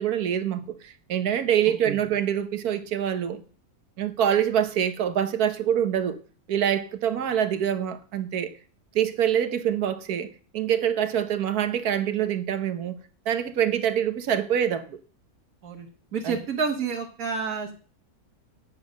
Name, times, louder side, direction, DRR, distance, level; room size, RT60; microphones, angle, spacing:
voice 1, 0.0-3.4 4.0-6.2 6.5-8.5 8.9-13.0 13.2-15.0 16.2-16.4, right 9 dB, 90° right, 1.5 m, -25 dB
voice 2, 16.1-17.7, right 5 dB, 70° right, 2.0 m, -29 dB
9.9 x 7.5 x 6.3 m
omnidirectional pair, 1.6 m